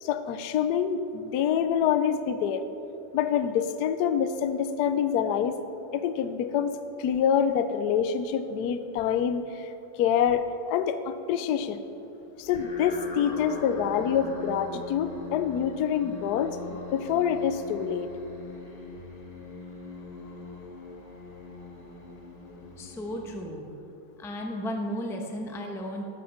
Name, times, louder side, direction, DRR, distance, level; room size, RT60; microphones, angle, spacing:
voice 1, 0.0-2.6 3.1-5.6 5.9-9.7 10.0-11.8 12.4-18.1, left 8 dB, 70° left, 10 dB, 1.0 m, -26 dB
sound 1, 12.4-23.9, left 3 dB, 25° left, 1.2 m, -42 dB
voice 2, 22.8-23.7 24.2-26.0, equal, ahead, 2 dB, 0.6 m, -34 dB
14.0 x 11.5 x 4.4 m, 2.9 s
omnidirectional pair, 2.1 m